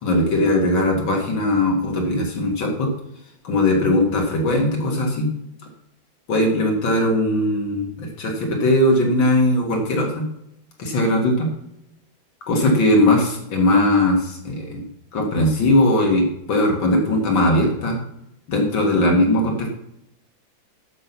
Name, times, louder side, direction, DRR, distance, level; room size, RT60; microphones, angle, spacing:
voice 1, 0.0-2.9 3.4-5.3 6.3-10.3 10.8-11.5 12.5-14.8 15.1-18.0 18.5-19.7, left 1 dB, 75° left, 0 dB, 3.1 m, -19 dB
14.0 x 7.1 x 6.2 m, 0.82 s
omnidirectional pair, 2.1 m